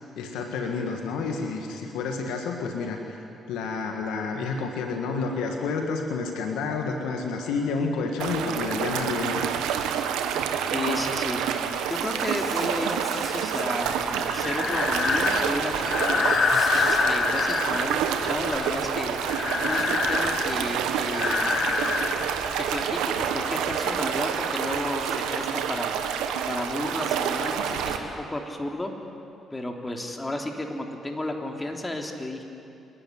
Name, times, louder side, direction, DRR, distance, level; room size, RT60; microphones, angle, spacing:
voice 1, 0.2-3.0 3.5-9.5, left 4 dB, 75° left, 3 dB, 1.7 m, -29 dB
sound 1, 8.2-28.0, right 8 dB, 80° right, 1.4 m, -28 dB
voice 2, 10.7-11.4 11.9-16.2 16.8-19.2 19.6-21.5 22.6-25.9 26.5-28.9 29.5-32.4, left 1 dB, 20° left, 2 dB, 3.4 m, -33 dB
Insect, 11.9-13.7 14.8-15.6 15.9-17.0, right 1 dB, 15° right, 5.6 m, -42 dB
Breathing, 13.8-22.9, left 5 dB, 50° left, 1.3 m, -27 dB
28.5 x 11.5 x 9.8 m, 2.7 s
hypercardioid pair, 45°, 0 cm